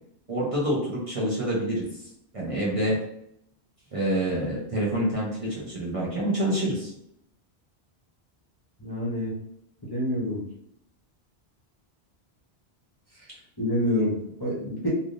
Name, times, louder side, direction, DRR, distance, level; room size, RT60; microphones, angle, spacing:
voice 1, 0.3-1.9 2.3-3.0 3.9-6.9, right 1 dB, 35° right, -6 dB, 0.8 m, -27 dB
voice 2, 8.8-9.3 9.8-10.4 13.6-14.9, left 1 dB, 25° left, -7 dB, 0.8 m, -27 dB
3.3 x 2.6 x 2.5 m, 0.72 s
omnidirectional pair, 1.1 m